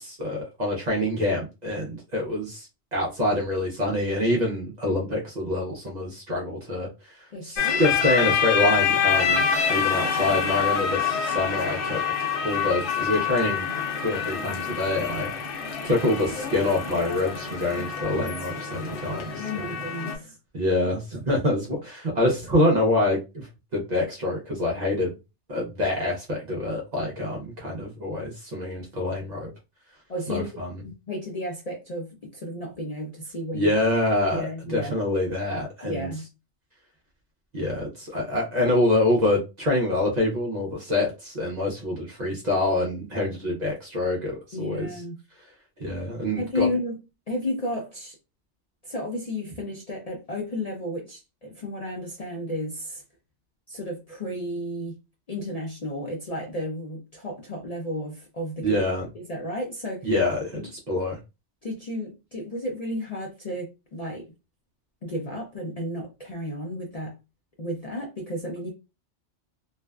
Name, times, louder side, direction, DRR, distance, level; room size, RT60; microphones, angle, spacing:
voice 1, 0.0-9.4 9.7-12.0 12.4-13.7 14.0-19.7 20.5-23.5 23.7-25.1 25.5-29.5 30.3-30.8 33.5-36.1 37.5-44.9 45.8-46.7 58.6-59.1 60.0-61.2, left 1 dB, 45° right, 0.6 m, -26 dB
voice 2, 7.3-7.8 9.1-9.5 19.4-20.4 30.1-33.7 34.3-34.9 35.8-36.2 44.5-45.2 46.4-47.0 47.3-48.2 48.8-53.0 53.7-55.0 55.3-58.8 59.1-60.1 60.5-60.7 61.6-64.2 65.0-67.2 67.6-68.7, left 1 dB, 50° left, 0.5 m, -33 dB
sound 1, 7.6-20.2, left 7 dB, 80° left, 1.0 m, -26 dB
2.5 x 2.2 x 2.2 m
omnidirectional pair, 1.2 m